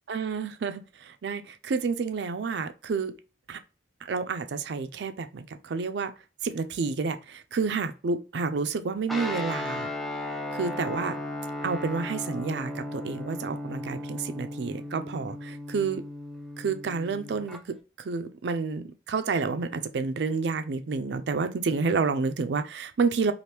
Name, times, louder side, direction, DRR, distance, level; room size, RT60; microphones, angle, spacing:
voice 1, 0.1-3.1 3.5-3.6 4.1-6.1 6.4-9.9 10.5-11.2 11.6-16.0 16.6-17.6 18.0-23.3, right 4 dB, 65° right, 0.4 m, -29 dB
Guitar, 9.1-17.6, left 1 dB, ahead, 0.3 m, -36 dB
3.3 x 2.5 x 2.8 m
head